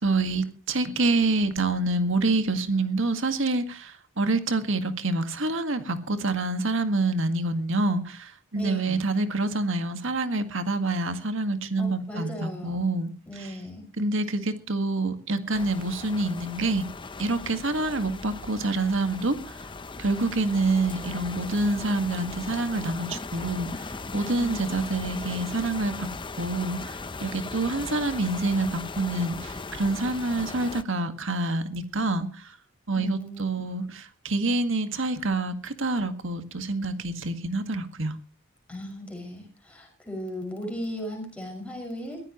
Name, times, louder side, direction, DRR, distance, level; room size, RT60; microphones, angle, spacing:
voice 1, 0.0-13.5 14.0-16.9 17.2-19.6 20.0-23.9 24.1-26.1 26.4-32.6 32.9-38.2, right 2 dB, 65° right, 8 dB, 1.9 m, -27 dB
voice 2, 8.5-9.0 11.8-12.9 13.3-13.9 24.3-24.6 32.9-33.6 38.7-42.2, equal, 5° left, 1 dB, 6.1 m, -36 dB
sound 1, 15.5-30.8, left 3 dB, 25° left, 0.7 m, -38 dB
22.0 x 15.5 x 3.1 m, 0.36 s
head